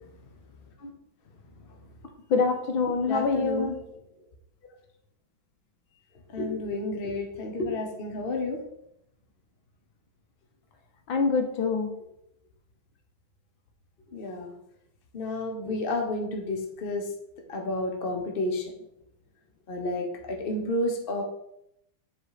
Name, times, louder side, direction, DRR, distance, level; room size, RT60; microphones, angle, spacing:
voice 1, 2.3-3.7 11.1-11.9, left 4 dB, 90° left, 5 dB, 1.8 m, -25 dB
voice 2, 3.1-3.8 6.3-8.6 14.1-14.5 15.1-17.1 17.5-18.7 19.7-21.2, left 2 dB, 40° left, 2 dB, 0.9 m, -31 dB
7.6 x 4.1 x 4.9 m, 0.78 s
omnidirectional pair, 2.1 m